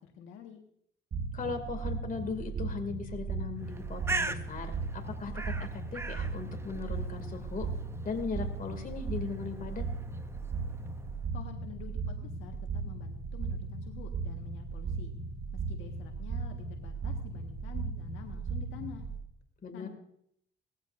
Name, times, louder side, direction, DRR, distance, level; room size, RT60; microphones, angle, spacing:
voice 1, 0.0-0.6 11.3-15.1 15.5-19.1 19.7-19.9, left 8 dB, 80° left, 2 dB, 1.6 m, -48 dB
sound 1, 1.1-19.2, right 4 dB, 55° right, 1.9 m, -37 dB
voice 2, 1.3-7.7 8.0-9.8 19.6-19.9, left 5 dB, 45° left, 4 dB, 2.4 m, -38 dB
Bird, 3.6-11.2, right 3 dB, 15° right, 0.7 m, -41 dB
18.5 x 14.5 x 2.6 m, 0.70 s
cardioid pair, 90°, 20 cm